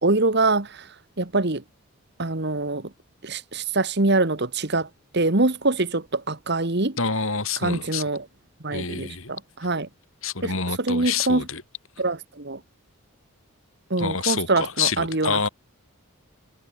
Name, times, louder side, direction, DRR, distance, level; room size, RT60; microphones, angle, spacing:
voice 1, 0.0-0.9 1.2-1.6 2.2-2.9 3.2-4.9 5.1-7.0 7.6-8.2 8.6-9.9 10.4-10.5 10.8-11.4 12.0-12.6 13.9-15.5, right 2 dB, 50° right, 1.5 m, -24 dB
voice 2, 7.0-8.0 8.7-9.3 10.2-11.6 14.0-15.5, left 5 dB, 65° left, 3.8 m, -27 dB
head